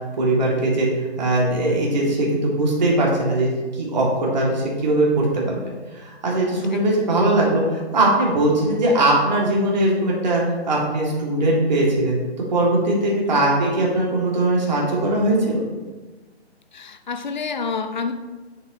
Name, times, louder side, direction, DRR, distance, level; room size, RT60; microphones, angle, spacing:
voice 1, 0.2-0.9 1.2-12.2 12.5-15.6, right 1 dB, 40° right, -3 dB, 2.4 m, -20 dB
voice 2, 6.7-7.2 13.3-13.4 16.7-18.1, left 5 dB, 45° left, 9 dB, 0.7 m, -29 dB
9.6 x 7.9 x 3.0 m, 1.2 s
figure-of-eight pair, 145°, 33 cm